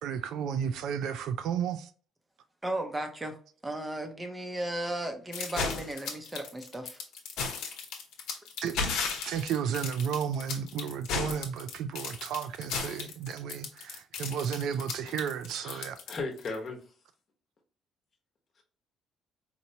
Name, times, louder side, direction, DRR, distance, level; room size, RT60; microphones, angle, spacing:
voice 1, 0.0-1.9 8.6-8.8 9.2-16.0, right 8 dB, 75° right, 0.3 m, -33 dB
voice 2, 2.6-3.4 3.6-7.0, right 1 dB, 15° right, 0.6 m, -35 dB
sound 1, 5.3-16.5, left 5 dB, 85° left, 0.8 m, -35 dB
voice 3, 15.6-16.8, left 3 dB, 45° left, 0.9 m, -37 dB
4.2 x 2.1 x 2.7 m
cardioid pair, 115°, 0 cm